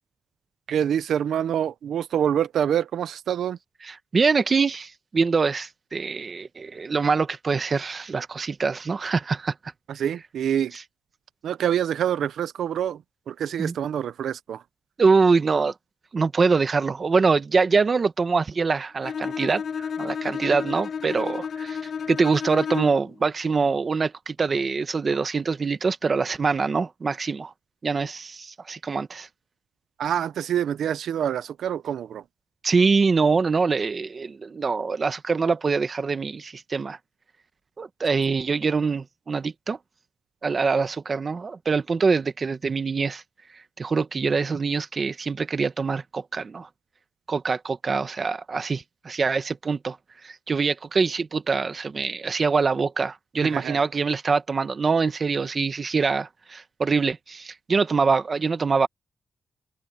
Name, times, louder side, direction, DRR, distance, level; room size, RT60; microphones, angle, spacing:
voice 1, 0.7-3.6 9.9-10.7 11.4-13.0 13.3-14.6 30.0-32.2 53.4-53.8, right 9 dB, 90° right, 0.7 m, -26 dB
voice 2, 3.8-9.5 13.6-13.7 15.0-15.7 16.1-21.8 22.1-27.5 27.8-29.3 32.6-37.0 37.8-39.8 40.4-43.2 43.8-46.7 47.3-50.0 50.2-58.9, right 4 dB, 35° right, 1.2 m, -24 dB
Bowed string instrument, 19.0-23.1, left 6 dB, 60° left, 0.7 m, -31 dB
wide cardioid pair, 150°, 0 cm